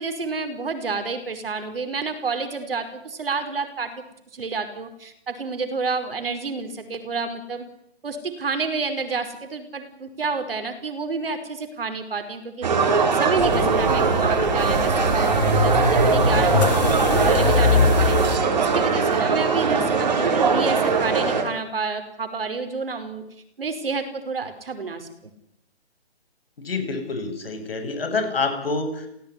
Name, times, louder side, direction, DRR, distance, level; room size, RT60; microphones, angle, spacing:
voice 1, 0.0-4.0 4.3-7.6 8.0-18.2 18.6-23.2 23.6-25.3, right 4 dB, 55° right, 8 dB, 5.4 m, -29 dB
sound 1, 12.6-21.4, right 5 dB, 40° right, 5.1 m, -20 dB
sound 2, 13.4-18.4, left 5 dB, 40° left, 3.7 m, -23 dB
voice 2, 26.6-29.1, left 3 dB, 60° left, 7 dB, 7.9 m, -27 dB
29.5 x 17.0 x 10.0 m, 0.78 s
hypercardioid pair, 175°, 33 cm